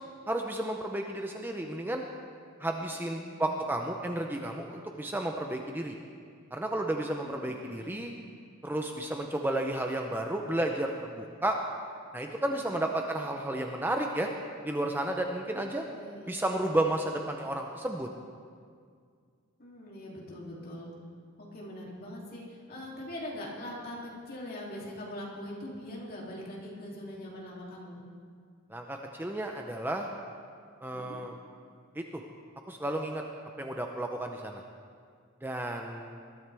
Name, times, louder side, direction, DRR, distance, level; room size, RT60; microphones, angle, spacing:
voice 1, 0.3-2.0 2.6-6.0 6.5-8.1 8.6-11.6 12.1-14.3 14.6-15.8 16.3-18.1 28.7-30.1 30.8-31.4 31.9-32.2 32.7-33.2 33.6-34.6 35.4-36.2, right 1 dB, 10° right, 2 dB, 0.6 m, -32 dB
voice 2, 7.2-8.0 12.6-12.8 15.5-16.5 19.6-20.9 21.4-28.0 30.9-31.2, left 1 dB, 45° left, -4 dB, 2.9 m, -42 dB
21.0 x 13.0 x 3.4 m, 2.1 s
head